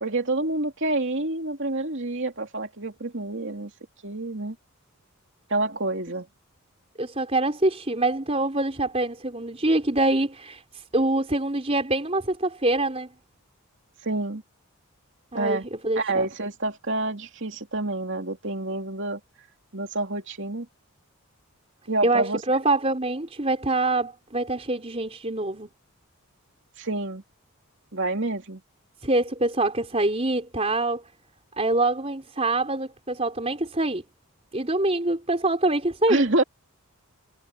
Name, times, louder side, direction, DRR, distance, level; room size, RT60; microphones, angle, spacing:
voice 1, 0.0-3.7 4.0-4.6 5.5-6.3 14.0-14.4 15.3-15.7 16.0-19.2 19.7-20.7 21.9-22.4 26.8-27.2 27.9-28.6 36.1-36.4, right 2 dB, 55° right, 2.9 m, -27 dB
voice 2, 7.0-13.1 15.3-16.3 22.0-25.7 29.0-31.0 31.6-34.0 34.5-36.2, right 2 dB, 25° right, 4.3 m, -25 dB
head